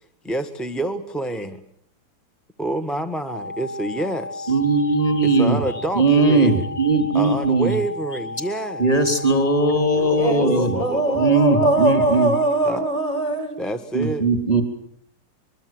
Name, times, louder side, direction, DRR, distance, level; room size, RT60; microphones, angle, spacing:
voice 1, 0.2-1.6 2.6-4.6 5.2-6.7 7.1-8.9 9.9-11.7 12.6-12.9 13.6-14.2, right 2 dB, ahead, 1.2 m, -28 dB
sound 1, 3.3-12.5, left 2 dB, 80° left, 3.3 m, -34 dB
voice 2, 4.5-5.6 6.0-7.7 8.8-10.8 11.1-12.3 13.9-14.6, right 3 dB, 20° left, 3.8 m, -19 dB
voice 3, 10.1-13.5, right 2 dB, 45° left, 5.6 m, -21 dB
24.0 x 23.5 x 7.8 m
omnidirectional pair, 2.0 m